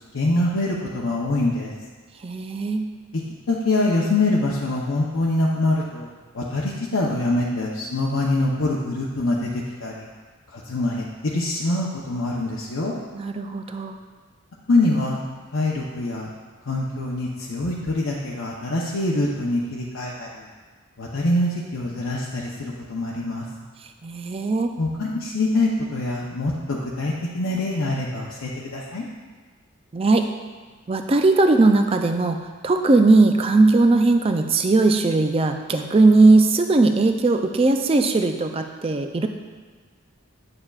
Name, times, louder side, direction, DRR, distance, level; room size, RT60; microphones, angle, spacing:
voice 1, 0.1-1.7 3.5-9.5 9.8-10.1 10.5-12.9 14.7-15.2 15.5-16.3 16.7-20.5 21.0-23.5 24.8-29.1, left 2 dB, 80° left, -4 dB, 0.7 m, -24 dB
voice 2, 2.2-2.9 13.1-14.0 24.0-24.7 29.9-30.3 30.9-39.3, right 3 dB, 25° right, 6 dB, 0.4 m, -18 dB
8.7 x 6.7 x 2.4 m, 1.4 s
head